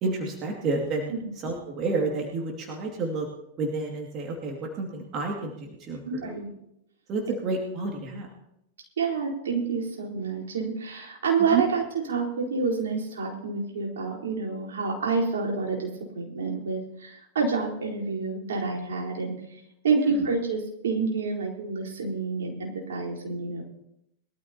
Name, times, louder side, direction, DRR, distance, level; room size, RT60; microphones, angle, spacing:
voice 1, 0.0-1.1 1.4-3.3 3.6-6.3 7.1-8.3 11.5-11.6 20.0-20.1, right 3 dB, 35° right, 1 dB, 2.4 m, -30 dB
voice 2, 6.1-6.5 8.1-8.2 9.0-19.4 19.8-23.6, right 4 dB, 70° right, -2 dB, 4.2 m, -28 dB
22.0 x 13.0 x 2.9 m, 0.81 s
hypercardioid pair, 100°, 0 cm